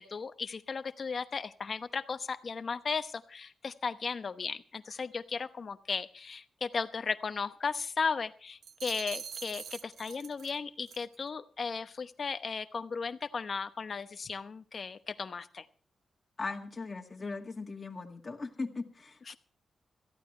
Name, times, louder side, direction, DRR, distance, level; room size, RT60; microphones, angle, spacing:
voice 1, 0.0-15.6 19.3-19.4, left 5 dB, 45° left, 9 dB, 0.9 m, -36 dB
sound 1, 8.6-10.6 10.9-11.2, right 7 dB, 80° right, 0.6 m, -44 dB
voice 2, 16.4-19.2, left 3 dB, 30° left, 0 dB, 1.9 m, -39 dB
21.5 x 14.5 x 3.3 m, 0.40 s
wide cardioid pair, 120°, 0 cm